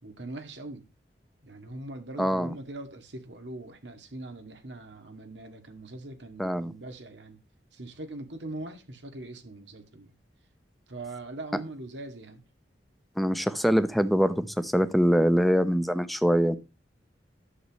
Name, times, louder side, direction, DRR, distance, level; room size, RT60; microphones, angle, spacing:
voice 1, 0.0-0.9 1.4-7.4 7.7-10.1 10.9-12.4, right 2 dB, 80° right, 2.1 m, -41 dB
voice 2, 2.2-2.5 6.4-6.7 13.2-16.6, equal, ahead, 0.7 m, -24 dB
11.0 x 8.0 x 3.1 m
head